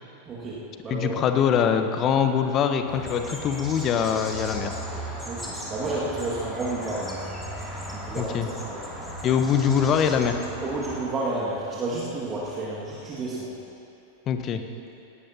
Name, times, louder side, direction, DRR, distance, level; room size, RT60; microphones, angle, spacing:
voice 1, 0.3-1.2 5.2-7.2 7.9-8.8 10.6-13.5, right 2 dB, 25° right, -6 dB, 2.0 m, -31 dB
voice 2, 0.9-4.7 8.2-8.5 9.2-10.4 14.3-14.6, left 7 dB, 30° left, 7 dB, 0.9 m, -23 dB
sound 1, 2.9-11.0, equal, 5° left, 2.7 m, -36 dB
18.5 x 16.5 x 2.9 m, 2.8 s
figure-of-eight pair, 90°, 0 cm